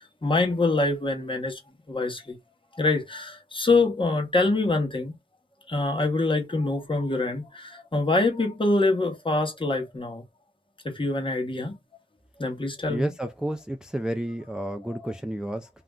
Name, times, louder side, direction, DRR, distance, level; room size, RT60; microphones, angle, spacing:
voice 1, 0.0-1.6 1.9-2.4 2.7-5.1 5.7-10.2 10.8-11.8 12.4-13.1 14.9-15.1, left 2 dB, 30° left, 0.9 m, -25 dB
voice 2, 12.9-15.7, right 1 dB, 5° right, 0.3 m, -31 dB
2.5 x 2.1 x 3.5 m
wide cardioid pair, 65°, 18 cm